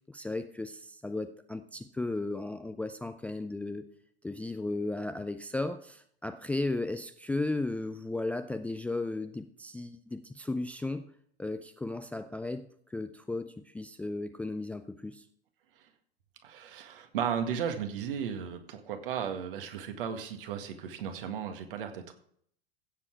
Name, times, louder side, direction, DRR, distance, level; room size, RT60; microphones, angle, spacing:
voice 1, 0.1-3.8 4.2-11.0 11.4-15.2, left 2 dB, 5° left, 10 dB, 0.4 m, -35 dB
voice 2, 16.4-22.1, right 8 dB, 60° right, 6 dB, 1.9 m, -35 dB
16.0 x 7.6 x 4.5 m, 0.64 s
figure-of-eight pair, 85°, 31 cm